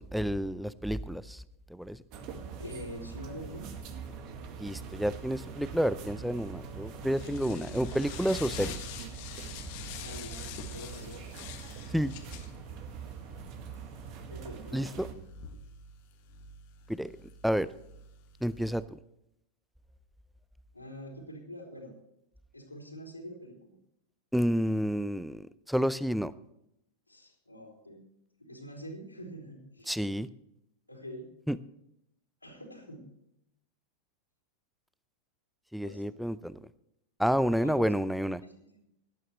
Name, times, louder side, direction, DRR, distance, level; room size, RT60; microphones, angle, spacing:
voice 1, 0.0-1.4 1.7-2.0 4.6-8.8 11.9-12.1 14.7-15.1 16.9-17.1 17.4-17.7 18.4-19.0 24.3-26.3 29.9-30.3 31.5-31.6 35.7-36.6 37.2-38.4, equal, ahead, 18 dB, 0.5 m, -30 dB
sound 1, 2.1-15.1, right 6 dB, 40° right, 1.9 m, -43 dB
voice 2, 2.6-3.7 7.3-8.0 10.0-11.2 14.3-15.2 20.7-21.9 22.5-23.7 27.1-28.0 28.4-29.9 30.9-31.3 32.4-33.1 35.8-36.1 37.6-37.9 38.4-38.9, equal, 85° left, -1 dB, 4.0 m, -45 dB
sound 2, 6.4-18.8, left 5 dB, 45° left, 1.6 m, -46 dB
18.0 x 12.5 x 3.2 m, 0.80 s
figure-of-eight pair, 90°, 0 cm